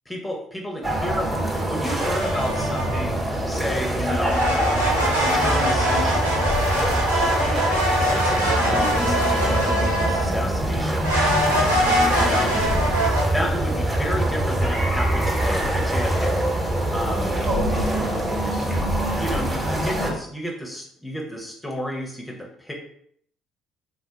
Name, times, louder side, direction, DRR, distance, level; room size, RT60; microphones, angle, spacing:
voice 1, 0.1-1.3 1.7-4.4 5.1-6.4 7.1-11.1 12.1-12.6 13.3-16.4 16.9-17.3 19.1-22.7, equal, 10° left, -1 dB, 0.6 m, -31 dB
sound 1, 0.8-20.1, right 1 dB, 15° right, 1.0 m, -24 dB
sound 2, 1.8-3.1 4.2-10.4 11.0-13.2, equal, 85° right, 0.5 m, -23 dB
voice 2, 17.2-18.7 19.4-20.0, right 1 dB, 50° right, -3 dB, 1.1 m, -32 dB
3.8 x 2.1 x 2.8 m, 0.67 s
figure-of-eight pair, 50°, 0 cm